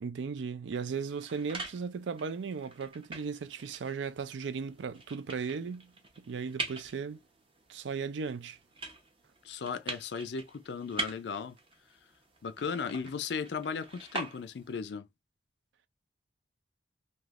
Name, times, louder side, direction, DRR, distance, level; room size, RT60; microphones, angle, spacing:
voice 1, 0.0-7.2 7.7-8.6, right 5 dB, 75° right, 0.4 m, -36 dB
sound 1, 0.9-14.8, right 2 dB, 30° right, 0.8 m, -44 dB
voice 2, 9.4-11.6 12.4-15.1, left 5 dB, 65° left, 0.4 m, -36 dB
3.3 x 2.7 x 2.4 m
head